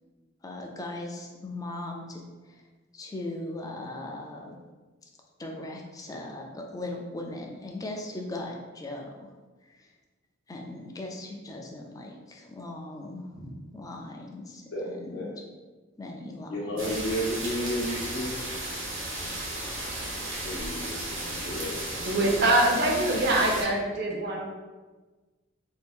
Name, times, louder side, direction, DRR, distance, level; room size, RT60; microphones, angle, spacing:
voice 1, 0.4-2.6 2.9-4.6 5.4-9.3 9.6-9.9 10.5-15.3 16.0-17.0 20.7-20.8, left 2 dB, 20° left, 1 dB, 0.4 m, -39 dB
voice 2, 16.5-18.4 20.4-21.1 21.4-21.7, equal, 85° left, -7 dB, 0.7 m, -31 dB
sound 1, 16.8-23.6, right 1 dB, 75° right, 1.0 m, -34 dB
voice 3, 22.0-24.4, right 1 dB, 55° right, 0 dB, 0.6 m, -24 dB
2.7 x 2.5 x 3.5 m, 1.3 s
head